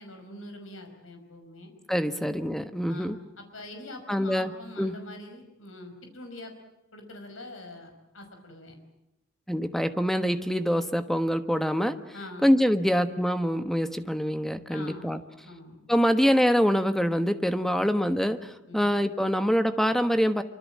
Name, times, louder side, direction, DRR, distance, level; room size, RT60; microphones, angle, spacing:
voice 1, 0.0-1.7 2.9-6.5 6.9-8.8 12.1-12.6 14.7-15.1 15.4-15.9 18.7-18.9, left 2 dB, 75° left, 5 dB, 5.4 m, -44 dB
voice 2, 1.9-3.2 4.1-4.5 4.8-4.9 9.5-12.0 12.4-15.2 15.9-20.4, equal, ahead, 9 dB, 1.2 m, -25 dB
25.5 x 25.0 x 7.6 m, 0.89 s
head